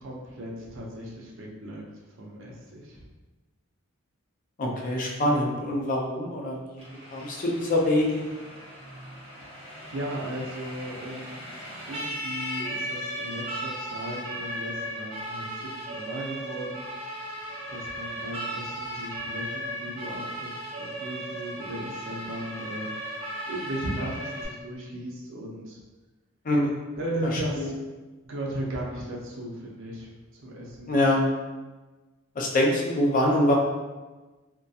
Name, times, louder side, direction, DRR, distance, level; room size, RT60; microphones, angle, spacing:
voice 1, 0.0-1.8 2.2-3.0 9.4-9.6 9.9-11.4 11.9-16.9 17.7-22.9 23.5-25.8 27.0-27.8 28.2-30.9, right 1 dB, 65° right, -2 dB, 0.5 m, -36 dB
voice 2, 4.6-6.8 7.1-8.2 26.4-26.7 27.6-27.7 30.9-31.2 32.4-33.5, left 1 dB, 40° left, -1 dB, 0.4 m, -24 dB
Siren, 6.8-24.5, equal, 30° right, 0.7 m, -36 dB
2.3 x 2.2 x 2.6 m, 1.2 s
head